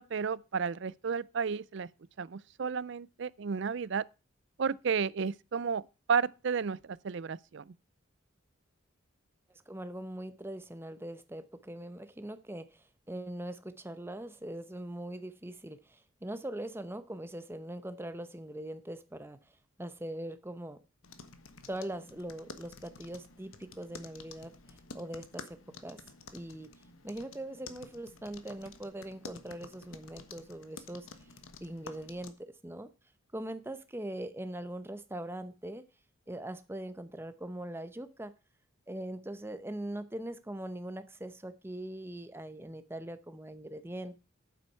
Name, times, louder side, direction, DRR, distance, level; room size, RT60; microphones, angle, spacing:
voice 1, 0.0-1.9 2.2-4.0 4.6-5.8 6.1-7.7, right 6 dB, 60° right, 0.4 m, -32 dB
voice 2, 9.7-19.4 19.8-20.8 21.7-26.0 26.3-26.7 27.0-31.1 31.6-32.9 33.3-35.8 36.3-38.3 38.9-44.2, right 1 dB, 10° right, 0.8 m, -41 dB
sound 1, 21.0-32.3, left 4 dB, 90° left, 1.3 m, -51 dB
9.2 x 7.6 x 5.7 m
head